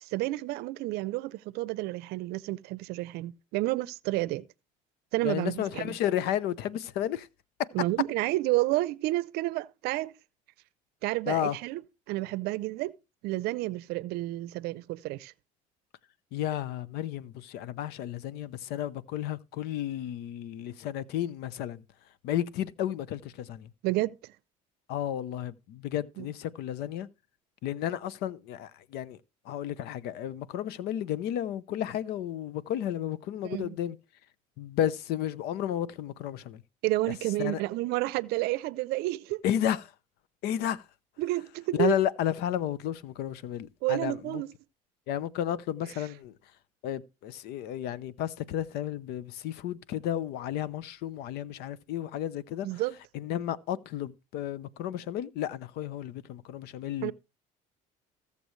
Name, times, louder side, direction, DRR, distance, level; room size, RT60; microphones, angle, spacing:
voice 1, 0.0-4.5 5.1-6.0 7.7-10.1 11.0-11.8 12.1-12.9 13.2-15.3 23.8-24.3 26.2-26.3 33.4-33.8 36.8-39.4 41.2-42.0 43.8-44.5 46.0-46.1 52.6-53.0 57.0-57.1, right 19 dB, 70° right, 0.6 m, -30 dB
voice 2, 5.2-7.3 11.3-11.6 16.3-21.8 22.2-23.7 24.9-27.1 27.6-29.2 29.5-34.0 34.6-36.6 37.4-37.6 39.4-39.9 40.4-40.8 41.7-44.4 45.1-46.3 46.8-52.7 53.1-57.1, left 11 dB, 70° left, 0.8 m, -32 dB
19.0 x 6.9 x 3.2 m
supercardioid pair, 85°, 17 cm